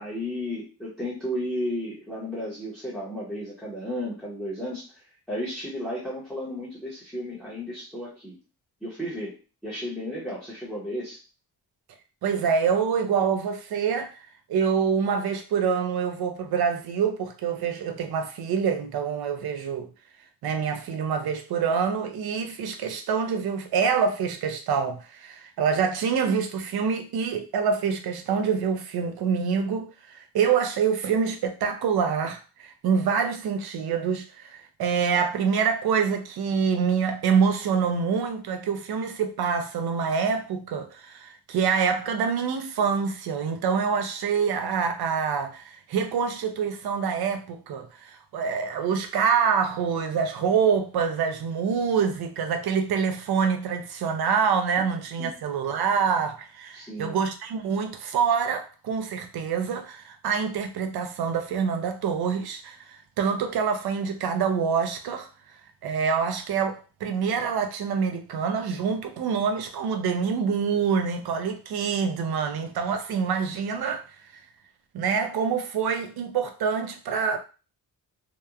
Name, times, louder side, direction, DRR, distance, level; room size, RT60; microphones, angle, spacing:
voice 1, 0.0-5.0 5.3-8.4 8.8-11.2 55.2-55.3 56.7-57.2, equal, ahead, 0.7 m, -33 dB
voice 2, 12.2-14.2 14.5-19.9 20.4-65.3 65.8-74.0 74.3-74.4 74.9-77.4, right 6 dB, 70° right, 0.5 m, -26 dB
2.9 x 2.1 x 2.3 m
wide cardioid pair, 160°, 40 cm